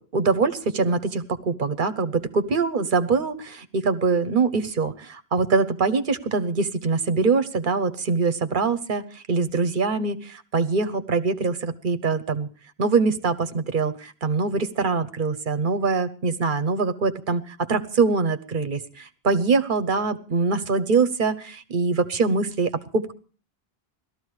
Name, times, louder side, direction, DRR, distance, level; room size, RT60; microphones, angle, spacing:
voice 1, 0.0-12.5 12.8-23.1, right 4 dB, 55° right, 10 dB, 1.2 m, -23 dB
17.5 x 13.5 x 4.8 m, 0.39 s
omnidirectional pair, 1.1 m